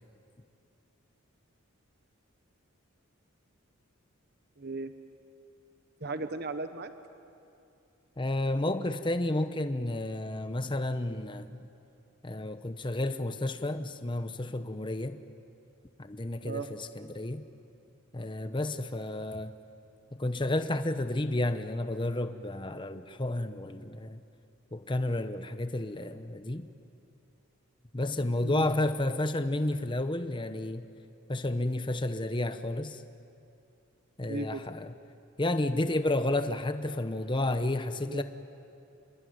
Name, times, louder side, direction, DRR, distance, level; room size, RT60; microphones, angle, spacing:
voice 1, 4.6-4.9 6.0-6.9 16.4-16.7 28.4-28.7 34.2-34.6 38.0-38.2, right 3 dB, 45° right, 1.1 m, -36 dB
voice 2, 8.2-11.6 12.2-15.2 16.0-17.4 18.1-19.6 20.1-24.2 24.7-26.7 27.9-30.9 31.3-33.0 34.2-34.9 35.4-38.2, left 1 dB, 20° left, 0.8 m, -31 dB
27.0 x 21.5 x 9.5 m
head